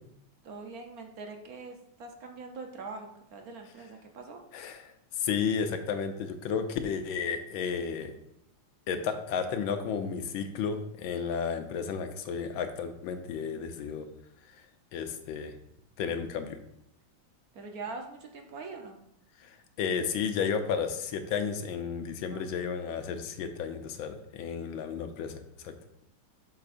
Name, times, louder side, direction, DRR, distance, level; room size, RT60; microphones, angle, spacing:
voice 1, 0.4-4.4 17.5-19.0 22.3-22.4, right 3 dB, 65° right, 3 dB, 0.9 m, -43 dB
voice 2, 5.2-8.2 8.9-14.1 14.9-15.5 16.0-16.6 19.4-25.4 25.6-25.7, left 6 dB, 80° left, 8 dB, 1.4 m, -32 dB
7.7 x 6.5 x 2.5 m, 0.76 s
omnidirectional pair, 2.2 m